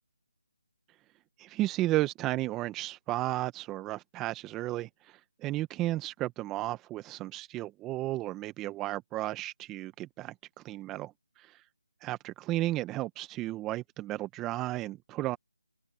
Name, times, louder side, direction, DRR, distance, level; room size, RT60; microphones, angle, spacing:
voice 1, 1.4-10.3 10.6-11.6 12.0-15.4, right 16 dB, 10° right, 0.9 m, -33 dB
open air
figure-of-eight pair, 160°, 0 cm